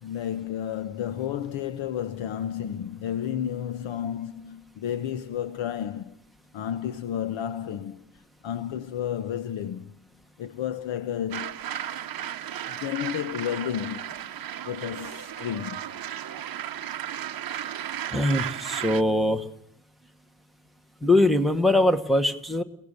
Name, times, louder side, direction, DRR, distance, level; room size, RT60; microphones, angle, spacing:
voice 1, 0.0-6.2 6.5-10.0 10.4-11.6 12.7-14.3 14.6-16.0, left 10 dB, 70° left, 1.0 m, -32 dB
sound 1, 11.3-19.0, right 11 dB, 45° right, 0.9 m, -35 dB
voice 2, 18.1-19.4 21.0-22.6, left 1 dB, ahead, 1.3 m, -22 dB
30.0 x 17.5 x 6.7 m
cardioid pair, 165°, 48 cm